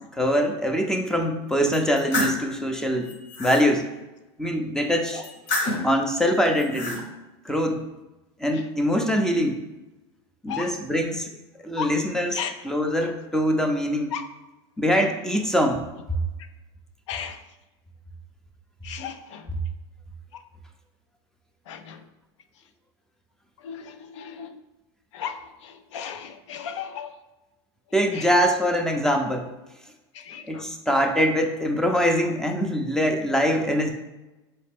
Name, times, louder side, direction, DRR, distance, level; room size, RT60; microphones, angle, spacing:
voice 1, 0.2-3.1 3.4-3.9 4.4-5.2 5.8-7.1 7.4-7.8 8.4-9.6 10.4-11.3 11.6-14.2 14.8-15.8 27.9-29.5 30.5-33.9, equal, 5° left, 4 dB, 0.4 m, -23 dB
sound 1, 1.7-2.4 3.0-3.6 5.2-5.9 6.5-7.0, left 2 dB, 60° left, 1.1 m, -28 dB
voice 2, 18.8-19.4 21.7-22.0 23.6-24.6 25.1-27.1 28.2-28.3 30.2-30.7, left 8 dB, 80° left, 9 dB, 0.5 m, -35 dB
4.1 x 3.2 x 3.4 m, 1.0 s
supercardioid pair, 130°, 15 cm